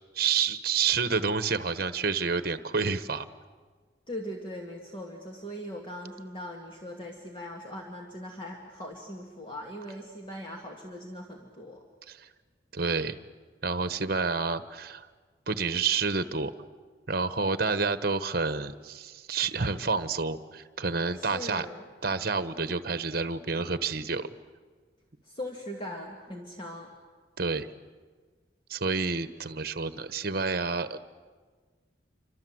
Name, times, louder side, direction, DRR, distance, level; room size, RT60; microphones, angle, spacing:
voice 1, 0.1-3.3 12.1-12.3 12.7-13.2 13.6-15.1 15.5-16.5 17.1-21.7 22.0-24.4 27.4-27.7 28.7-31.0, right 4 dB, 55° right, 12 dB, 1.1 m, -29 dB
voice 2, 4.1-11.8 21.1-21.9 25.2-26.9, left 1 dB, 25° left, 0 dB, 2.2 m, -40 dB
28.0 x 25.0 x 7.9 m, 1.5 s
head